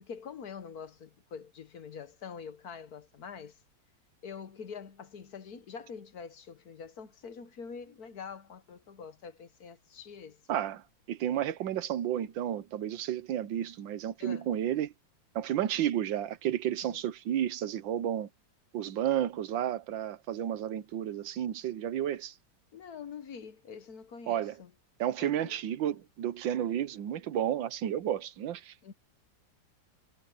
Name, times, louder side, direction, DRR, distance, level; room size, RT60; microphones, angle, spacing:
voice 1, 0.0-3.6 4.2-10.6 14.2-14.5 16.8-17.0 22.7-24.7 25.2-25.6 28.8-28.9, left 6 dB, 60° left, 1.6 m, -45 dB
voice 2, 10.5-14.9 15.3-18.3 18.7-22.3 24.3-24.6 25.0-28.7, right 11 dB, 85° right, 1.6 m, -32 dB
omnidirectional pair, 2.0 m